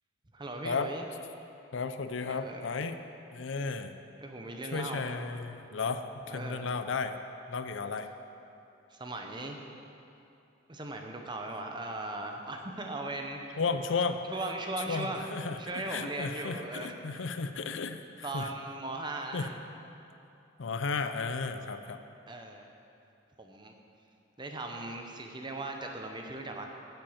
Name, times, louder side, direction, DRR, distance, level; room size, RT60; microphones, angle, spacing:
voice 1, 0.3-1.1 2.2-2.7 4.2-5.3 6.3-6.7 8.9-9.6 10.7-13.6 14.3-15.2 15.6-17.3 18.2-19.6 22.3-22.7 23.4-23.7 24.4-26.7, right 2 dB, 25° right, 3 dB, 0.8 m, -38 dB
voice 2, 1.7-3.0 3.3-3.9 4.7-7.2 7.5-8.1 13.6-14.2 14.9-18.5 19.3-19.5 20.6-22.0, left 4 dB, 70° left, 8 dB, 0.5 m, -34 dB
9.0 x 7.9 x 7.3 m, 2.8 s
head